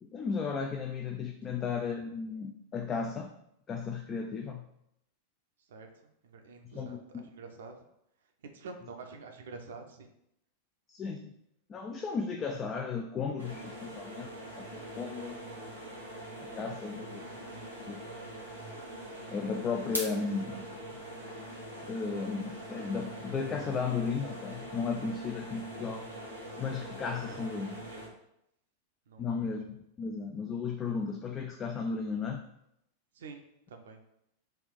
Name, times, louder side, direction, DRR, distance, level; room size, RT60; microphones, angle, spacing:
voice 1, 0.0-3.3 3.7-4.7 6.6-7.2 10.9-11.3 11.7-15.4 16.4-17.2 17.9-18.0 19.3-20.8 21.8-26.1 26.6-27.7 29.2-32.4, left 5 dB, 25° left, 4 dB, 0.3 m, -35 dB
voice 2, 5.6-7.8 8.4-10.1 16.7-17.0 20.0-20.1 27.1-28.1 29.1-29.4 33.1-34.0, right 4 dB, 60° right, 5 dB, 0.5 m, -49 dB
sound 1, 13.4-28.1, right 1 dB, 90° left, 1.0 m, -43 dB
3.3 x 2.5 x 3.8 m, 0.79 s
figure-of-eight pair, 90°, 0 cm